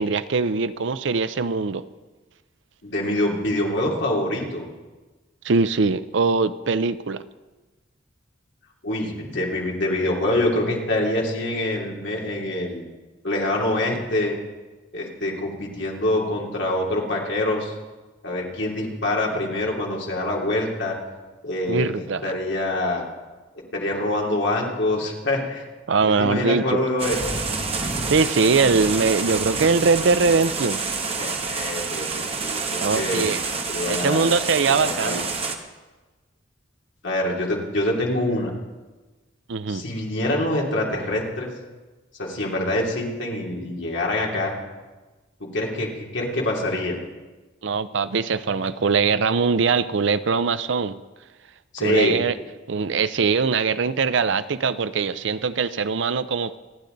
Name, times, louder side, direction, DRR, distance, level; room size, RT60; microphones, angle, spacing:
voice 1, 0.0-1.8 5.4-7.2 21.7-22.3 25.9-26.8 28.1-30.8 32.8-33.4 33.9-35.3 39.5-39.8 47.6-51.0 51.8-52.4 52.7-56.6, right 4 dB, 65° right, 14 dB, 0.5 m, -22 dB
voice 2, 2.8-4.7 8.8-12.8 13.2-14.4 14.9-17.7 18.2-21.0 21.4-23.0 23.7-25.6 26.1-27.4 31.2-33.3 33.7-34.4 34.7-35.2 37.0-38.5 39.7-41.5 42.2-44.5 45.4-47.0 51.7-52.2, left 1 dB, 65° left, -2 dB, 2.9 m, -25 dB
sound 1, 27.0-35.6, right 4 dB, 30° right, 1.1 m, -28 dB
26.5 x 10.0 x 4.0 m, 1.2 s
head